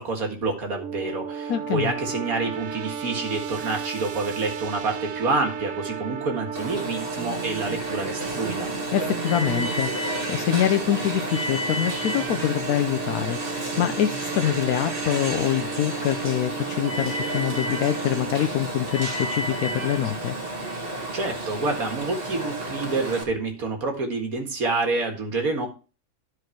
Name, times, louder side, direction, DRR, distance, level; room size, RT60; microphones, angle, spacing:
voice 1, 0.0-8.7 21.1-25.7, right 3 dB, 85° right, 2.3 m, -28 dB
sound 1, 0.7-18.3, right 7 dB, 70° right, 0.9 m, -35 dB
voice 2, 1.5-1.9 8.9-20.3, left 11 dB, 90° left, 1.1 m, -25 dB
Alarm, 6.5-23.2, right 1 dB, 40° right, 1.9 m, -31 dB
12.0 x 4.8 x 4.5 m
omnidirectional pair, 1.5 m